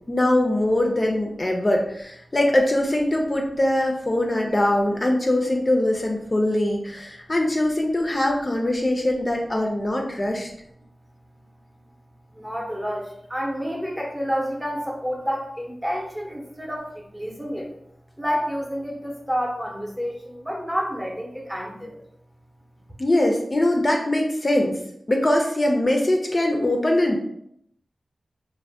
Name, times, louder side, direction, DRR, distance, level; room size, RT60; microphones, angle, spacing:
voice 1, 0.0-10.5 23.0-24.8 25.1-27.2, left 1 dB, 35° left, 1 dB, 0.4 m, -22 dB
voice 2, 12.3-17.7 18.2-22.0, equal, 10° right, 0 dB, 0.7 m, -29 dB
2.4 x 2.1 x 3.4 m, 0.73 s
cardioid pair, 50°, 0 cm